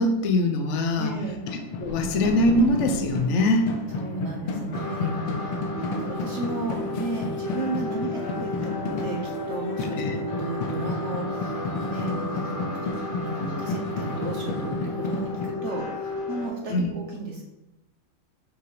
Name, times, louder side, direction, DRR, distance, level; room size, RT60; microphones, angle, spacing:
voice 1, 0.0-1.1 1.8-3.7 5.0-5.4 10.0-10.2 16.7-16.8, left 1 dB, 55° left, 4 dB, 0.8 m, -23 dB
voice 2, 1.0-1.4 3.9-12.8 13.2-17.4, right 3 dB, 45° right, -1 dB, 1.0 m, -34 dB
sound 1, 1.2-15.5, left 3 dB, 85° left, 1.8 m, -33 dB
sound 2, 1.8-3.5 4.7-16.5, left 2 dB, 30° left, 2.3 m, -34 dB
6.1 x 5.0 x 4.8 m, 0.94 s
omnidirectional pair, 2.4 m